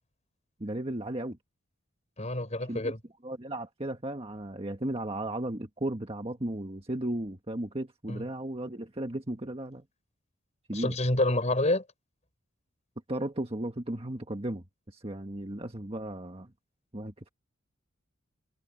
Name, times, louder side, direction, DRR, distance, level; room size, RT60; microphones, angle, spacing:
voice 1, 0.6-1.4 2.7-2.9 3.2-9.8 10.7-10.9 13.1-16.5 16.9-17.3, right 1 dB, 25° right, 1.6 m, -35 dB
voice 2, 2.2-3.0 8.1-8.2 10.7-11.8, left 1 dB, 35° left, 5.2 m, -27 dB
head